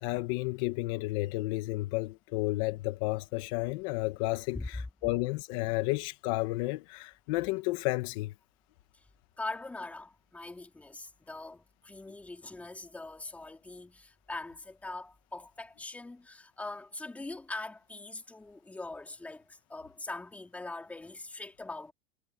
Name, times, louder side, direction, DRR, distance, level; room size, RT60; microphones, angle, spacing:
voice 1, 0.0-8.3, left 20 dB, 60° left, 1.6 m, -32 dB
voice 2, 4.5-4.9 9.4-21.9, left 2 dB, 5° left, 3.6 m, -42 dB
supercardioid pair, 145°, 19 cm